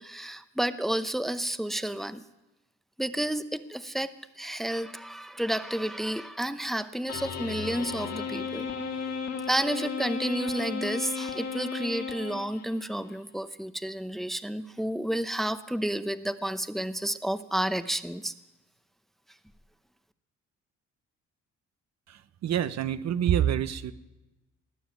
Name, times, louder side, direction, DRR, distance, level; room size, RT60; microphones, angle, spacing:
voice 1, 0.0-2.2 3.0-4.1 4.4-8.7 9.5-18.3, right 1 dB, ahead, 12 dB, 0.7 m, -31 dB
sound 1, 7.1-12.9, left 5 dB, 60° left, 2.3 m, -34 dB
voice 2, 22.4-23.9, right 10 dB, 60° right, 14 dB, 0.8 m, -26 dB
19.5 x 7.0 x 9.6 m, 1.0 s
cardioid pair, 90°, 30 cm